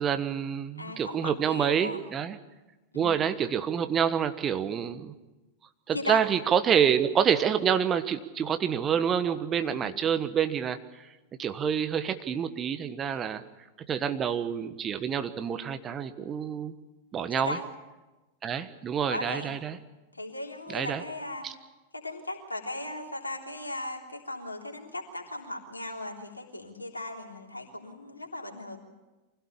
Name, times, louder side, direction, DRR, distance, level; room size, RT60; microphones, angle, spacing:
voice 1, 0.0-2.4 2.9-5.1 5.9-10.8 11.4-13.4 13.9-16.7 17.1-17.6 18.4-19.8 20.7-21.0, right 8 dB, 25° right, 10 dB, 1.4 m, -27 dB
voice 2, 0.8-2.1 2.9-3.1 5.9-6.2 9.6-9.8 13.1-13.4 17.3-17.7 19.1-19.5 20.1-21.5 21.9-28.8, left 1 dB, 80° left, 1 dB, 3.5 m, -37 dB
25.0 x 17.0 x 8.7 m, 1.1 s
figure-of-eight pair, 90°, 0 cm